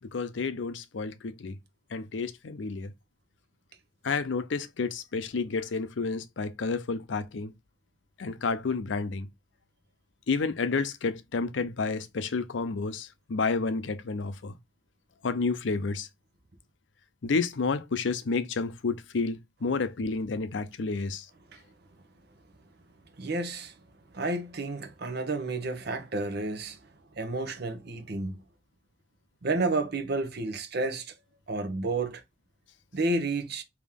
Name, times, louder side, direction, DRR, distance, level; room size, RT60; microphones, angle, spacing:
voice 1, 0.1-1.6 1.9-2.9 4.0-7.5 8.2-9.3 10.3-14.5 15.2-16.1 17.2-21.3, left 4 dB, 80° left, 0.6 m, -30 dB
voice 2, 23.2-23.7 24.1-26.8 27.2-28.3 29.4-31.1 31.5-32.2 32.9-33.6, right 2 dB, 60° right, 0.8 m, -31 dB
3.5 x 2.9 x 3.5 m
head